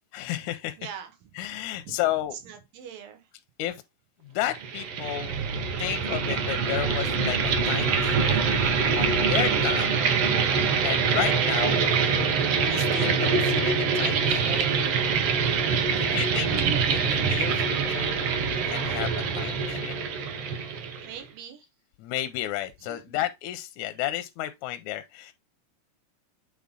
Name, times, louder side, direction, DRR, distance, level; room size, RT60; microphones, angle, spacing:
voice 1, 0.1-0.8 1.4-2.4 3.6-3.8 4.2-5.3 5.8-7.4 7.7-8.5 9.0-10.0 10.8-11.8 12.6-14.7 16.0-16.5 16.9-20.1 22.0-25.3, left 14 dB, 80° left, 1.8 m, -32 dB
voice 2, 0.8-1.1 1.5-1.6 1.9-2.0 2.4-3.2 5.0-5.3 21.0-21.6 22.9-23.2, right 8 dB, 85° right, 2.9 m, -43 dB
sound 1, 4.5-21.2, right 5 dB, 65° right, 1.6 m, -24 dB
8.5 x 3.7 x 3.7 m
omnidirectional pair, 3.8 m